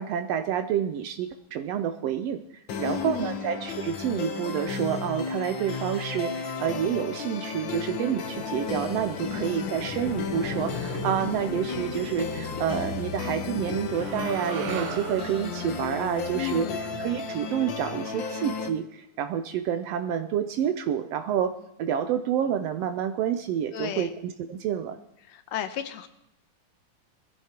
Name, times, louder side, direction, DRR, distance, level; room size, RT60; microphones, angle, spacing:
voice 1, 0.0-2.4 2.8-21.5 21.8-25.0, right 9 dB, 90° right, 7 dB, 1.3 m, -28 dB
sound 1, 2.7-18.7, left 5 dB, 90° left, 1.0 m, -34 dB
voice 2, 2.8-3.4 9.3-9.7 16.3-16.8 23.7-24.1 25.3-26.1, left 11 dB, 70° left, 10 dB, 1.8 m, -33 dB
sound 2, 8.2-16.7, left 4 dB, 55° left, 1.9 m, -40 dB
sound 3, 13.9-18.2, right 8 dB, 70° right, 1.4 m, -39 dB
22.0 x 14.5 x 2.9 m, 0.80 s
omnidirectional pair, 3.6 m